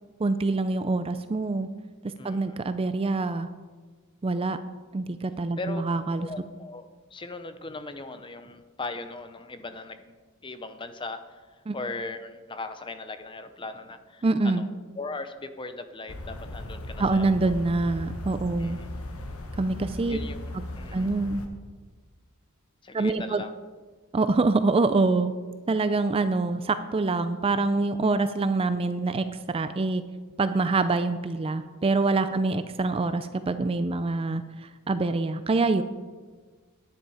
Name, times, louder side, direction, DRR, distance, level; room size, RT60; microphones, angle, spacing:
voice 1, 0.2-1.7 2.2-3.5 4.2-4.6 4.9-6.3 11.7-11.8 14.2-14.7 17.0-18.8 19.6-20.2 20.5-20.6 20.9-21.4 22.9-23.4 24.1-25.3 25.7-30.0 30.4-35.8, right 3 dB, 25° right, 11 dB, 0.4 m, -25 dB
voice 2, 2.2-2.6 5.6-5.8 6.2-14.7 14.9-17.5 18.6-18.9 20.1-21.1 22.8-23.5, left 3 dB, 20° left, 9 dB, 0.7 m, -39 dB
sound 1, 16.1-21.5, left 1 dB, 75° left, 1.3 m, -37 dB
10.5 x 9.8 x 4.9 m, 1.4 s
head